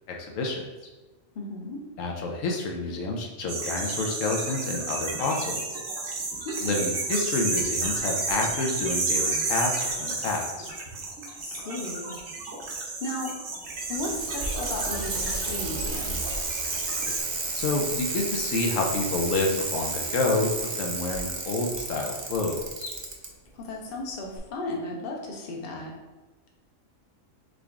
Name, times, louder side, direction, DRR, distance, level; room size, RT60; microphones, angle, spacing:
voice 1, 0.1-0.6 2.0-5.8 6.6-10.7 17.5-22.9, left 3 dB, 80° left, 1 dB, 1.0 m, -29 dB
voice 2, 1.3-1.8 6.4-6.9 11.3-12.1 12.7-13.4 13.9-16.3 23.5-25.9, left 2 dB, 50° left, -1 dB, 0.9 m, -35 dB
sound 1, 3.5-17.2, right 3 dB, 80° right, 1.3 m, -31 dB
Bicycle, 13.7-23.3 24.4-24.5, right 3 dB, 45° right, 0.6 m, -32 dB
3.8 x 3.4 x 3.5 m, 1.2 s
omnidirectional pair, 1.3 m